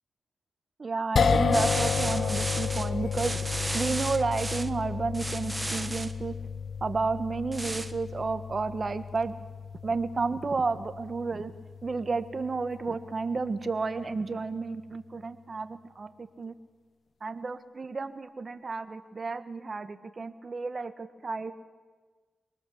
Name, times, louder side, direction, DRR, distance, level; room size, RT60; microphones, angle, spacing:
voice 1, 0.8-3.3 3.7-6.3 6.8-9.3 9.8-11.5 11.8-16.5 17.2-21.5, right 4 dB, 45° right, 10 dB, 1.4 m, -31 dB
sound 1, 1.2-13.5, left 5 dB, 65° left, 0.9 m, -32 dB
sound 2, 1.5-4.7 5.1-6.1 7.5-7.9, right 2 dB, 20° right, 1.4 m, -34 dB
24.5 x 19.0 x 7.1 m, 1.4 s
cardioid pair, 65°, 0 cm